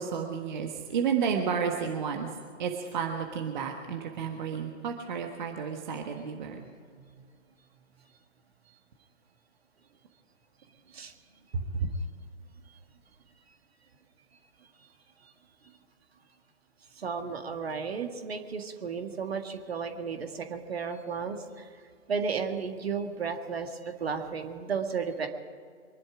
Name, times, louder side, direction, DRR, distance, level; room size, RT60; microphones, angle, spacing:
voice 1, 0.0-2.3 2.6-6.6 11.5-11.9, right 6 dB, 40° right, 3 dB, 1.5 m, -31 dB
voice 2, 17.0-21.7 22.1-25.3, right 5 dB, 55° right, 5 dB, 1.9 m, -34 dB
24.5 x 11.5 x 5.0 m, 2.1 s
figure-of-eight pair, 125°, 36 cm